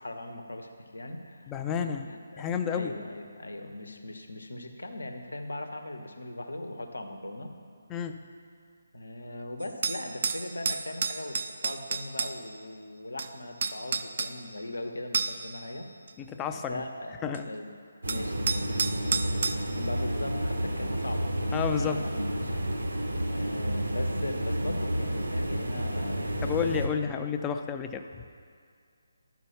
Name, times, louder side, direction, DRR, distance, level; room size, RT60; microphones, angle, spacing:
voice 1, 0.0-1.6 2.0-7.5 8.9-15.9 16.6-17.1 17.4-17.7 18.1-19.5 19.7-21.2 21.8-22.7 23.3-26.8, left 1 dB, 75° left, 4 dB, 1.0 m, -39 dB
voice 2, 1.5-2.1 2.4-2.9 7.9-8.2 16.2-16.8 17.2-17.5 21.5-22.0 26.4-28.2, left 7 dB, 15° left, 6 dB, 0.4 m, -31 dB
sound 1, 9.6-12.3 13.2-13.3 13.6-14.3 15.1-15.5 16.1-16.2 17.3-17.4 18.1-19.6, right 5 dB, 45° right, 0.4 m, -30 dB
sound 2, 18.0-26.9, equal, 75° right, 1.0 m, -30 dB
11.5 x 4.6 x 5.7 m, 2.2 s
figure-of-eight pair, 150°, 0 cm